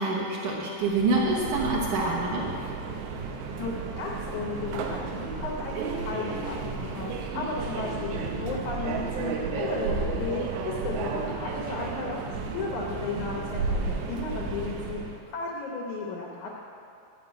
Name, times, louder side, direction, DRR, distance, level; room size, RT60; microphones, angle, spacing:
voice 1, 0.0-2.5, right 3 dB, 65° right, -4 dB, 2.3 m, -26 dB
Subway metro underground, 0.8-15.2, right 4 dB, 90° right, 3.1 m, -33 dB
voice 2, 3.6-12.2 12.5-16.5, left 4 dB, 75° left, -1 dB, 1.8 m, -34 dB
12.5 x 5.6 x 8.9 m, 2.6 s
omnidirectional pair, 4.8 m